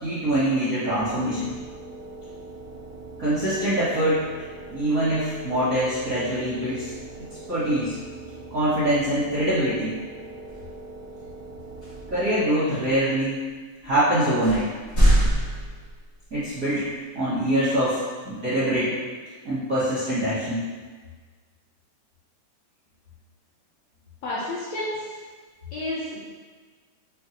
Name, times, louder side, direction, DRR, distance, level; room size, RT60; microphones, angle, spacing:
voice 1, 0.0-1.5 3.2-4.2 4.7-6.9 7.5-8.0 8.5-9.9 12.1-13.4 13.8-14.7 16.3-16.8 17.1-19.0 19.4-20.6, right 1 dB, 55° right, -14 dB, 0.9 m, -24 dB
sound 1, 1.0-12.7, right 3 dB, 80° right, 1.9 m, -41 dB
sound 2, 10.5-10.8 11.8-12.2 12.9-13.0 13.8-13.9 14.4-16.3, right 1 dB, 45° left, 0.9 m, -23 dB
voice 2, 24.2-25.1 25.7-26.2, left 1 dB, 75° left, -7 dB, 1.6 m, -30 dB
6.4 x 2.1 x 2.9 m, 1.5 s
omnidirectional pair, 3.5 m